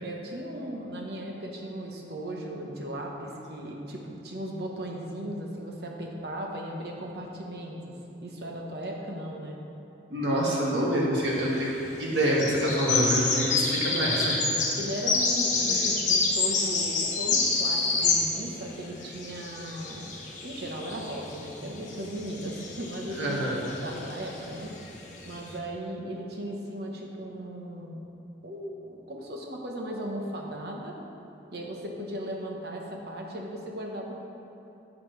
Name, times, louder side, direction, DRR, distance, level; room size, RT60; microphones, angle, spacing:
voice 1, 0.0-7.9 8.2-9.6 14.8-20.1 20.4-23.4 23.8-24.7 25.2-28.0 28.4-31.0 31.5-34.1, right 1 dB, 60° right, 0 dB, 1.1 m, -37 dB
voice 2, 10.1-14.5 15.6-15.7 23.2-23.7, equal, 80° right, -5 dB, 1.9 m, -26 dB
sound 1, 11.2-11.6 12.2-18.5 18.8-25.5, left 3 dB, 45° left, 1.2 m, -28 dB
11.0 x 7.4 x 3.3 m, 2.9 s
head